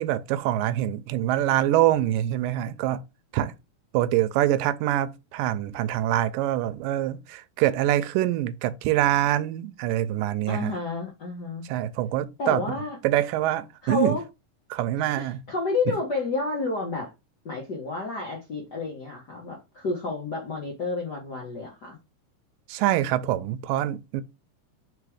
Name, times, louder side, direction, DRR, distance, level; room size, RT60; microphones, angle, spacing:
voice 1, 0.0-3.0 3.3-3.5 3.9-10.7 11.7-12.6 13.0-14.2 14.7-15.4 22.7-24.2, right 13 dB, 85° right, 2.3 m, -25 dB
voice 2, 10.5-11.7 12.4-13.0 13.8-14.2 15.0-17.1 17.4-22.0, left 3 dB, 60° left, 1.1 m, -30 dB
5.0 x 4.2 x 4.9 m
omnidirectional pair, 3.9 m